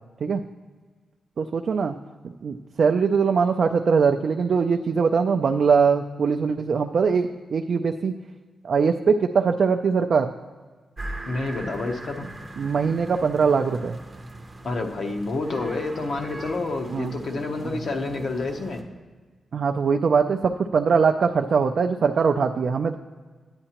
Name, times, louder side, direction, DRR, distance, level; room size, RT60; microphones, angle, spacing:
voice 1, 1.4-2.0 2.4-8.2 8.6-10.3 12.6-14.0 16.9-17.2 17.6-17.8 19.5-23.0, right 5 dB, 50° right, 5 dB, 0.3 m, -22 dB
sound 1, 11.0-18.8, right 2 dB, 15° right, 0.6 m, -40 dB
voice 2, 11.3-12.3 14.6-18.8, left 3 dB, 50° left, 3 dB, 0.8 m, -29 dB
9.8 x 9.7 x 2.9 m, 1.4 s
wide cardioid pair, 165°, 0 cm